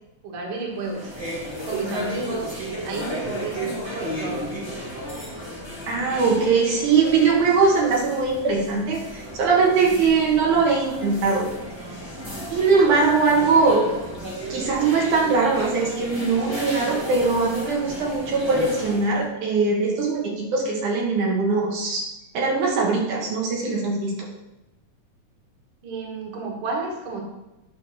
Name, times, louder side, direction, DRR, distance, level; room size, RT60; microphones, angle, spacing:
voice 1, 0.2-1.1 1.6-2.5 2.8-4.7 25.8-27.2, right 3 dB, 50° right, -1 dB, 2.1 m, -31 dB
sound 1, 0.8-19.2, right 1 dB, 20° right, 0.8 m, -34 dB
voice 2, 5.9-11.5 12.5-13.8 14.5-22.1 22.3-24.2, right 4 dB, 70° right, -2 dB, 2.7 m, -21 dB
9.1 x 3.5 x 6.2 m, 0.95 s
omnidirectional pair, 3.7 m